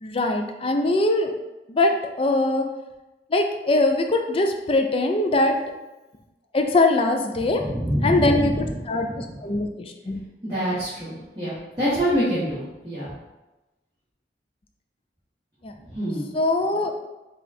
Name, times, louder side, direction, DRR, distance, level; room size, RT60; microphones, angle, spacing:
voice 1, 0.0-1.3 1.7-2.7 3.3-5.6 6.5-7.6 8.0-10.2 15.6-15.7 16.3-16.9, left 2 dB, 30° left, 4 dB, 0.4 m, -22 dB
voice 2, 7.4-8.7 9.0-9.2 10.4-13.1 15.9-16.3, equal, 20° right, -14 dB, 1.5 m, -26 dB
5.0 x 2.4 x 4.2 m, 1.0 s
head